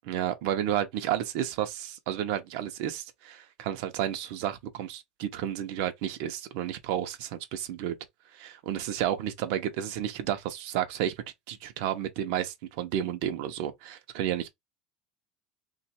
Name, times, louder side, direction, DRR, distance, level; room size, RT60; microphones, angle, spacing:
voice 1, 0.0-8.0 8.3-11.1 11.5-14.5, right 11 dB, 60° right, 0.8 m, -31 dB
3.1 x 2.5 x 4.3 m
cardioid pair, 180°, 0 cm